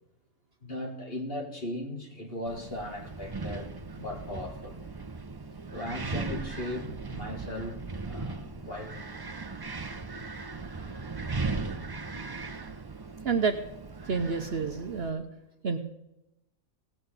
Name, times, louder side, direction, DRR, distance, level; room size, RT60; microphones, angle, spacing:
voice 1, 0.6-3.7 3.9-4.8 5.7-9.1, left 1 dB, 40° left, 1 dB, 2.3 m, -38 dB
Wind, 2.5-15.1, right 3 dB, 35° right, 0.4 m, -38 dB
voice 2, 13.2-13.6 14.1-15.3 15.6-15.8, right 5 dB, 50° right, 6 dB, 1.0 m, -28 dB
17.0 x 6.3 x 8.1 m, 0.90 s
omnidirectional pair, 1.5 m